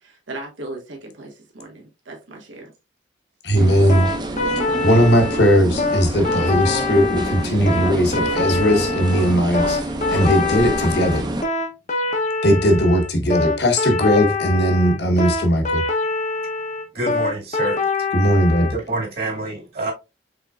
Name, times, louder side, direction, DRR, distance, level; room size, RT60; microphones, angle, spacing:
voice 1, 0.0-2.7, right 2 dB, 85° right, 1.4 m, -37 dB
voice 2, 3.4-4.1 4.8-9.8 10.1-11.2 12.4-15.8 18.1-18.7, equal, 60° left, 1.0 m, -18 dB
sound 1, 3.5-11.4, right 1 dB, 20° right, 0.6 m, -28 dB
sound 2, 3.9-18.7, left 3 dB, 40° left, 0.7 m, -24 dB
voice 3, 16.9-17.8 18.7-19.9, right 2 dB, 55° right, 2.0 m, -27 dB
5.0 x 3.7 x 2.3 m
head